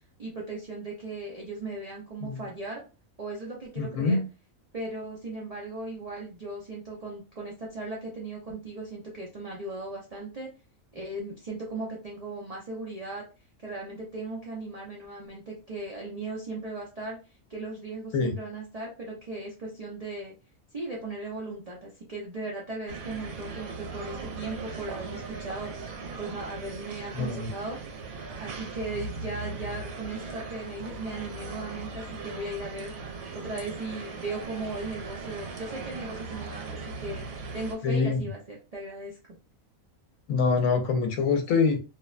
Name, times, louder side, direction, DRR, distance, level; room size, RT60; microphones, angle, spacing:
voice 1, 0.2-2.8 3.2-4.2 4.7-10.5 10.9-13.2 13.6-17.2 17.5-20.3 20.7-27.8 28.4-32.9 33.3-37.3 37.5-39.2, right 2 dB, 60° right, 0.4 m, -37 dB
voice 2, 3.8-4.2 18.1-18.4 27.1-27.5 37.8-38.2 40.3-41.8, left 4 dB, 75° left, 1.0 m, -25 dB
sound 1, 22.9-37.7, right 4 dB, 90° right, 1.1 m, -39 dB
2.6 x 2.1 x 2.3 m
omnidirectional pair, 1.5 m